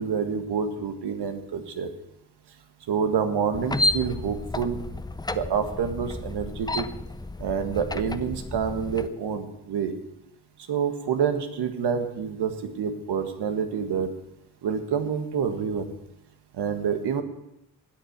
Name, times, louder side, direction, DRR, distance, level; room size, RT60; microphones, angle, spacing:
voice 1, 0.0-1.9 2.9-4.8 5.3-6.9 7.4-9.9 10.7-14.1 14.6-15.9 16.5-17.2, right 6 dB, 60° right, 7 dB, 1.7 m, -27 dB
sound 1, 3.5-9.1, left 1 dB, 10° left, 0.6 m, -31 dB
12.5 x 9.3 x 6.7 m, 0.88 s
hypercardioid pair, 45°, 45 cm